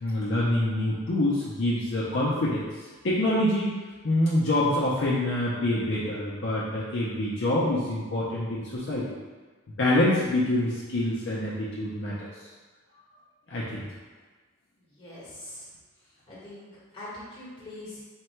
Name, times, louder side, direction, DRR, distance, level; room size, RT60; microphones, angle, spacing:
voice 1, 0.0-2.6 3.0-3.7 4.0-9.0 9.8-12.1 13.5-13.8, left 1 dB, 55° left, -6 dB, 0.5 m, -26 dB
voice 2, 14.9-15.7 16.3-18.0, left 1 dB, 25° left, -7 dB, 1.2 m, -43 dB
3.6 x 2.2 x 4.3 m, 1.3 s
head